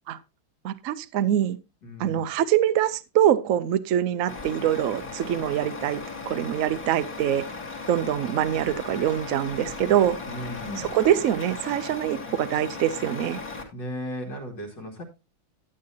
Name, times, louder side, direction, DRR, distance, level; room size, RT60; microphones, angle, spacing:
voice 1, 0.6-1.6 2.0-6.0 6.3-7.4 7.9-10.2 10.8-13.4, right 11 dB, 85° right, 13 dB, 0.7 m, -24 dB
voice 2, 1.8-2.3 10.2-10.9 13.7-15.0, equal, 60° left, -2 dB, 2.5 m, -36 dB
Truck, 4.3-13.6, left 3 dB, 45° left, 2.3 m, -37 dB
12.0 x 8.8 x 2.8 m, 0.26 s
omnidirectional pair, 2.2 m